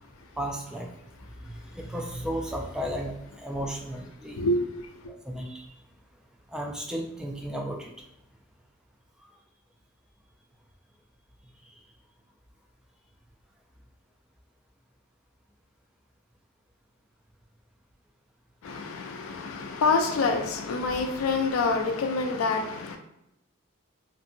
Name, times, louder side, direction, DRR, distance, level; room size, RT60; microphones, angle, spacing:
voice 1, 0.4-0.9 1.5-3.1 3.4-4.4 5.3-5.7 6.5-7.9, equal, 5° right, 0.3 m, -34 dB
voice 2, 4.4-4.9 18.6-23.0, left 3 dB, 80° left, 0.4 m, -27 dB
2.7 x 2.6 x 2.6 m
head